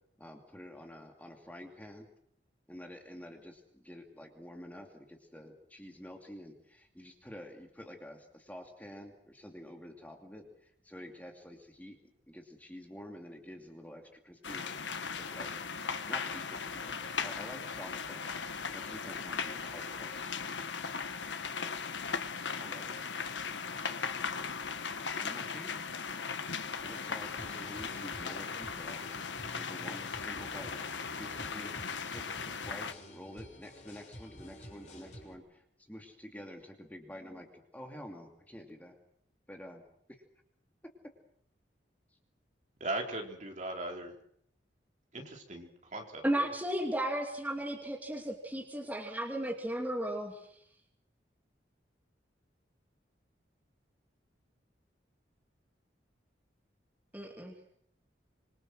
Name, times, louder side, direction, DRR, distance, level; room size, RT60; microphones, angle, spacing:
voice 1, 0.2-2.1 2.7-12.0 12.3-14.8 15.3-15.6 16.1-20.8 21.7-21.8 22.6-24.5 25.2-26.0 26.8-29.0 29.5-30.7 31.2-39.0 39.5-39.8 40.1-40.2, equal, 10° left, 3 dB, 2.5 m, -49 dB
sound 1, 14.4-32.9, left 5 dB, 85° left, 1.4 m, -38 dB
sound 2, 27.4-35.3, equal, 40° left, 5.6 m, -51 dB
voice 2, 42.8-44.1 45.1-46.5, right 2 dB, 40° right, 2 dB, 4.2 m, -39 dB
voice 3, 46.2-50.4 57.1-57.5, right 1 dB, 10° right, 1 dB, 2.7 m, -34 dB
26.5 x 23.5 x 6.4 m, 0.68 s
head